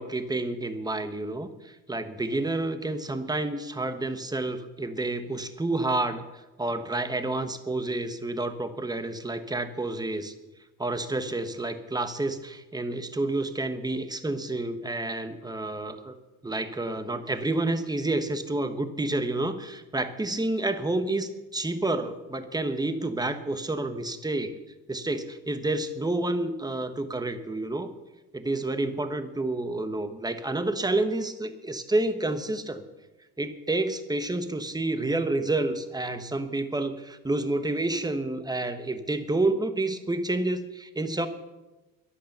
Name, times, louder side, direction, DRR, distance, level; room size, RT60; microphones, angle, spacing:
voice 1, 0.0-10.3 10.8-16.2 16.4-24.6 24.9-27.9 28.3-32.8 33.4-41.3, right 2 dB, 10° right, 9 dB, 1.2 m, -29 dB
22.5 x 8.5 x 6.8 m, 1.1 s
cardioid pair, 130°, 37 cm